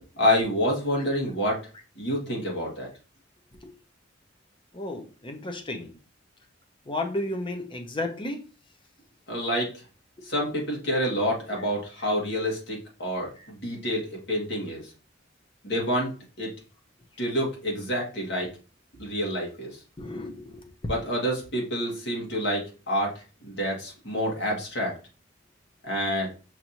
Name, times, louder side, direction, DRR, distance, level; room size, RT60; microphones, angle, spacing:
voice 1, 0.2-1.6 2.0-2.9 9.3-9.8 10.2-14.9 15.6-16.5 17.2-18.5 19.0-19.8 20.9-24.9 25.8-26.3, equal, 65° left, -2 dB, 1.8 m, -28 dB
voice 2, 4.7-6.0 6.9-8.4 20.0-20.6, left 1 dB, 25° left, 4 dB, 0.7 m, -33 dB
5.9 x 2.6 x 2.9 m, 0.35 s
head